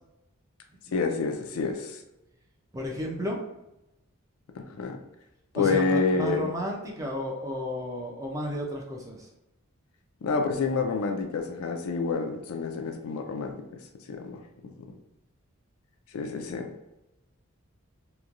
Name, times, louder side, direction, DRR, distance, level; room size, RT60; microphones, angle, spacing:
voice 1, 0.9-2.0 4.7-5.0 5.5-6.5 10.2-13.5 14.1-14.4 14.6-14.8 16.1-16.7, left 4 dB, 75° left, 5 dB, 0.4 m, -28 dB
voice 2, 2.7-3.4 5.5-9.3, equal, 15° right, -1 dB, 0.4 m, -32 dB
3.0 x 2.2 x 2.4 m, 0.92 s
head